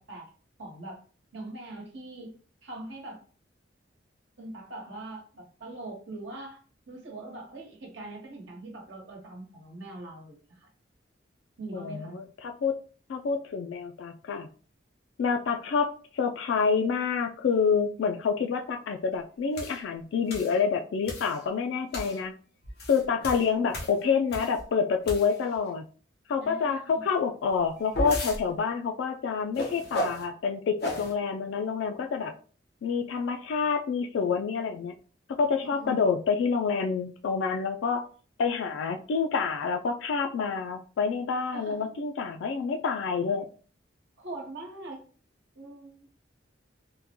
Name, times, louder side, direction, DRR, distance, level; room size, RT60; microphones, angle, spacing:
voice 1, 0.6-1.0 1.3-2.4 2.6-3.2 4.4-10.7 11.6-12.2 26.4-27.0 35.6-36.0 41.5-41.9 44.2-45.0 45.5-46.1, right 2 dB, 75° right, 1.1 m, -42 dB
voice 2, 11.7-12.7 13.1-14.5 15.2-22.3 22.9-25.8 26.3-32.3 32.8-35.0 35.4-38.1 38.4-43.5, left 5 dB, 75° left, 0.3 m, -28 dB
sound 1, 19.6-19.8 20.3-20.6 21.1-21.4 21.9-22.2 22.6-24.6 25.0-25.6 27.5-28.4 29.6-30.2 30.8-31.1, left 1 dB, 55° left, 0.9 m, -34 dB
3.6 x 2.2 x 2.9 m
head